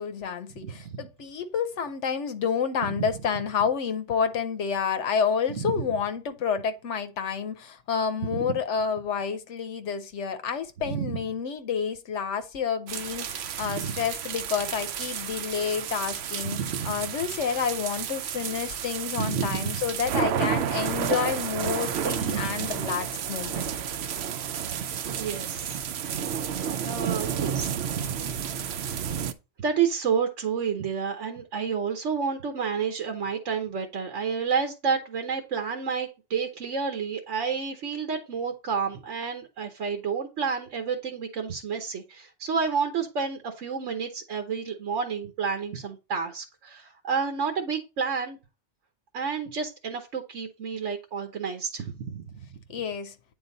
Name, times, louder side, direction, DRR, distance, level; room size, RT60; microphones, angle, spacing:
voice 1, 0.0-16.6 16.8-23.7 52.7-53.1, left 6 dB, 80° left, 1.1 m, -29 dB
voice 2, 10.9-11.2 13.6-14.0 16.4-16.9 19.2-19.7 22.1-22.9 25.0-25.8 26.3-26.5 26.8-28.1 28.6-28.7 29.6-48.4 49.1-52.4, right 6 dB, 85° right, 1.3 m, -30 dB
sound 1, 12.9-29.3, right 8 dB, 65° right, 0.8 m, -31 dB
8.9 x 3.9 x 3.9 m
omnidirectional pair, 1.2 m